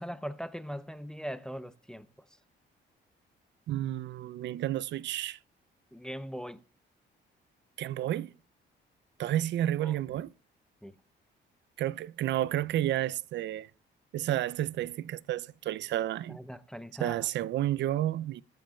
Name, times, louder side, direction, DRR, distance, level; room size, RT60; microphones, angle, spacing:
voice 1, 0.0-2.1 5.9-6.6 9.8-10.0 10.8-11.0 16.3-17.3, equal, 5° left, 0.5 m, -40 dB
voice 2, 3.7-5.4 7.8-8.3 9.2-10.3 11.8-13.7 14.1-16.4 17.0-18.4, right 13 dB, 65° right, 0.4 m, -31 dB
22.0 x 7.6 x 2.3 m
cardioid pair, 90°, 20 cm